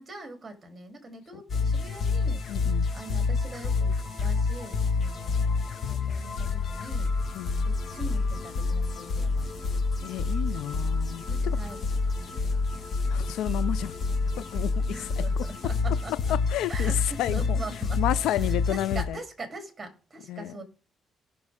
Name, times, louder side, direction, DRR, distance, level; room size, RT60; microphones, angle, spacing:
voice 1, 0.0-2.4 2.9-7.1 7.6-9.8 11.3-12.0 12.3-12.6 14.1-14.5 14.9-16.3 16.7-20.6, right 2 dB, 25° right, 3.3 m, -43 dB
sound 1, 1.5-19.0, left 4 dB, 55° left, 1.8 m, -28 dB
voice 2, 2.5-2.9 7.4-7.6 10.0-11.6 13.1-13.9 14.4-15.2 16.3-16.9 17.2-17.6 18.0-19.2 20.3-20.5, left 12 dB, 90° left, 0.4 m, -31 dB
17.5 x 6.1 x 3.6 m
cardioid pair, 90°, 0 cm